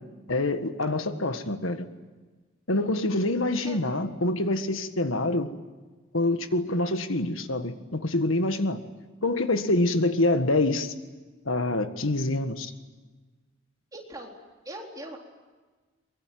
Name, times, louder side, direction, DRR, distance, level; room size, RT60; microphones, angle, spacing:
voice 1, 0.3-1.9 2.7-5.5 6.1-8.8 9.2-10.9 11.4-12.7, left 2 dB, 75° left, 9 dB, 1.6 m, -26 dB
voice 2, 13.9-14.4 14.7-15.2, right 1 dB, 15° right, 0 dB, 3.8 m, -40 dB
23.5 x 23.0 x 9.3 m, 1.3 s
head